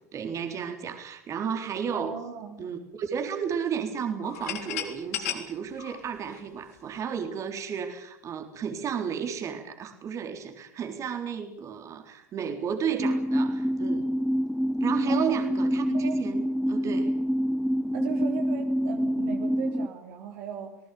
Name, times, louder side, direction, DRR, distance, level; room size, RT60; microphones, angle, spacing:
voice 1, 0.0-2.1 2.6-14.1 14.8-17.1, right 7 dB, 35° right, 5 dB, 4.1 m, -33 dB
voice 2, 1.9-2.6 15.1-15.3 15.9-16.2 17.9-20.8, right 8 dB, 60° right, 3 dB, 3.5 m, -37 dB
sound 1, 4.2-7.0, left 11 dB, 70° left, 3.6 m, -35 dB
sound 2, 13.0-19.9, equal, ahead, 0.9 m, -26 dB
29.5 x 19.5 x 7.1 m, 0.81 s
hypercardioid pair, 80°, 9 cm